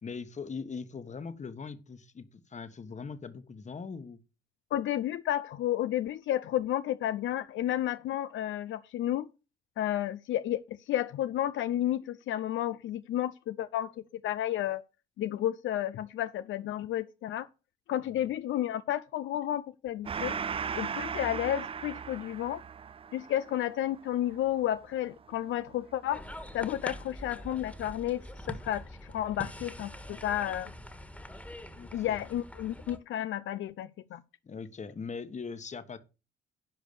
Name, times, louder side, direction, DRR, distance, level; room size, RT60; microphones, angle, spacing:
voice 1, 0.0-4.2 18.0-18.3 31.7-32.2 34.4-36.0, left 5 dB, 35° left, 1.4 m, -41 dB
voice 2, 4.7-9.3 9.8-13.9 14.2-14.8 15.2-17.5 17.9-20.4 20.7-22.6 23.1-26.2 26.5-30.7 31.9-34.2, left 12 dB, 75° left, 0.6 m, -32 dB
Gong, 20.0-27.0, right 6 dB, 30° right, 0.4 m, -38 dB
sound 1, 26.1-33.0, left 1 dB, 5° left, 1.7 m, -44 dB
10.5 x 5.1 x 6.8 m
cardioid pair, 90°, 20 cm